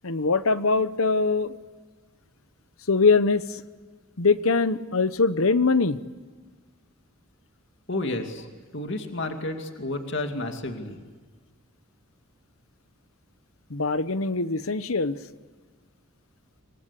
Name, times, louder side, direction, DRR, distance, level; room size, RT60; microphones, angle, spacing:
voice 1, 0.0-1.6 2.9-3.6 4.2-6.0 13.7-15.2, left 4 dB, 70° left, 14 dB, 1.0 m, -22 dB
voice 2, 7.9-8.5 8.7-11.0, left 2 dB, 55° left, 5 dB, 2.5 m, -31 dB
27.0 x 24.5 x 8.3 m, 1.5 s
head